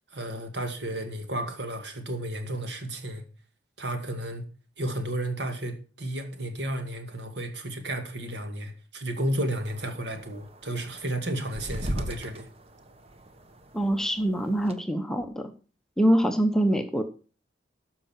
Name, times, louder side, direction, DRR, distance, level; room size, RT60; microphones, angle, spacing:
voice 1, 0.1-3.2 3.8-4.4 4.8-12.5, right 1 dB, 60° right, 2.0 m, -32 dB
sound 1, 9.5-14.7, right 1 dB, 30° right, 1.1 m, -39 dB
voice 2, 13.7-15.5 16.0-17.0, right 1 dB, 5° left, 0.8 m, -24 dB
13.0 x 5.6 x 5.8 m
head